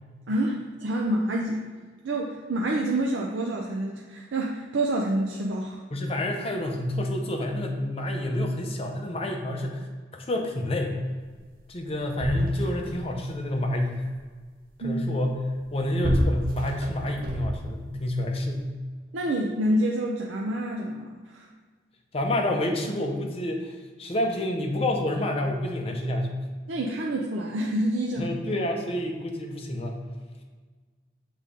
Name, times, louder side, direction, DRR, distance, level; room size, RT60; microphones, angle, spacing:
voice 1, 0.3-1.7 2.0-5.8 14.8-15.0 19.1-21.5 26.7-28.3, right 1 dB, 85° right, -1 dB, 0.6 m, -27 dB
voice 2, 5.9-9.9 10.1-11.0 11.7-14.1 14.8-15.4 15.7-18.7 22.1-26.4 28.2-30.0, left 1 dB, 30° left, 2 dB, 0.8 m, -28 dB
sound 1, 11.5-11.6 11.9-13.2 15.5-17.9 18.6-18.7, equal, 50° right, 0.8 m, -30 dB
6.5 x 4.0 x 3.7 m, 1.5 s
head